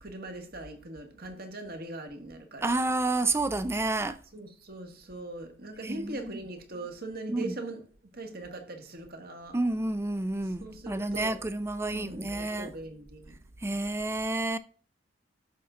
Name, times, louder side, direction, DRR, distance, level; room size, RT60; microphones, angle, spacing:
voice 1, 0.0-2.8 4.3-7.8 8.1-9.6 10.6-11.4 11.9-13.4, right 2 dB, 55° right, 1.8 m, -40 dB
voice 2, 2.6-4.2 5.8-6.3 7.3-7.5 9.5-12.7 13.6-14.6, right 2 dB, 15° right, 0.4 m, -30 dB
11.0 x 6.9 x 3.7 m
head